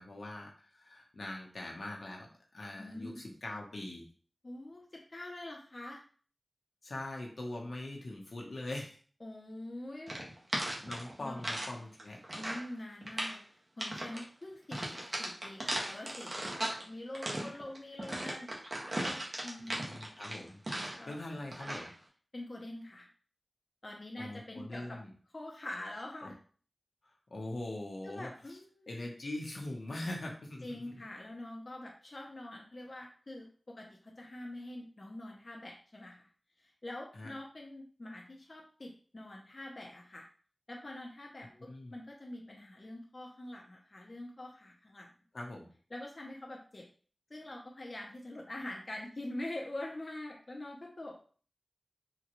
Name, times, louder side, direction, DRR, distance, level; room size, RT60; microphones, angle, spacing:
voice 1, 0.0-2.3 2.5-4.1 6.8-9.0 10.8-12.2 19.6-20.6 21.1-21.9 24.2-25.1 26.2-26.3 27.3-28.6 28.9-31.0 37.1-37.3 41.6-41.9 45.3-45.7, left 1 dB, 75° left, 0 dB, 0.8 m, -42 dB
voice 2, 2.8-3.2 4.4-6.0 9.2-10.2 11.2-11.4 12.4-18.5 18.9-19.2 19.4-19.8 21.0-21.4 22.3-23.1 23.8-25.0 25.3-26.4 28.0-28.9 30.6-36.3 36.6-40.3 40.7-45.1 45.9-46.9 47.3-51.2, left 1 dB, 45° left, -1 dB, 0.6 m, -45 dB
sound 1, 10.1-11.7 12.0-12.7 13.0-13.4 13.8-14.2 14.7-16.8 17.1-21.1 21.5-21.9, right 1 dB, 50° right, 0.8 m, -37 dB
3.8 x 2.2 x 2.9 m, 0.43 s
wide cardioid pair, 70°, 0 cm